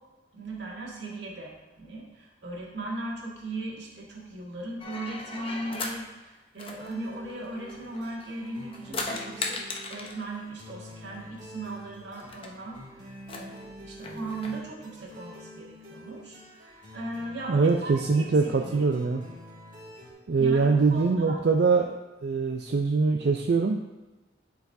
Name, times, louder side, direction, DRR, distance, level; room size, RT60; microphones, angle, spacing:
voice 1, 0.3-9.6 9.9-18.9 20.4-21.4, right 2 dB, 80° right, -3 dB, 1.8 m, -38 dB
sound 1, 4.8-6.0 6.6-8.2 8.6-10.2 11.4-11.5 11.7-11.8 12.2-12.5 13.2-14.6, left 3 dB, 30° left, 0.7 m, -37 dB
sound 2, 6.8-20.1, equal, 45° right, 1.9 m, -47 dB
voice 2, 17.5-19.2 20.3-22.0 22.2-23.8, right 4 dB, 60° right, 3 dB, 0.4 m, -23 dB
12.0 x 4.7 x 2.6 m, 1.1 s
head